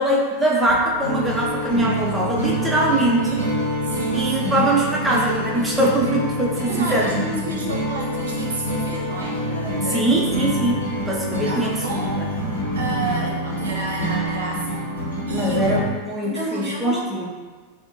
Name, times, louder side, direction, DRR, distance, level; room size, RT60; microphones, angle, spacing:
voice 1, 0.0-3.4 4.1-7.1 9.9-11.8 15.3-17.4, right 1 dB, 10° right, -4 dB, 0.5 m, -22 dB
sound 1, 0.6-12.6, left 3 dB, 55° left, 0.7 m, -36 dB
sound 2, 1.0-15.8, equal, 85° left, 1.0 m, -26 dB
voice 2, 3.8-4.3 6.7-10.1 11.4-12.4 12.7-14.9 15.3-15.7 16.2-17.1, right 2 dB, 70° right, -3 dB, 0.5 m, -31 dB
2.6 x 2.4 x 2.7 m, 1.4 s
figure-of-eight pair, 90°, 0 cm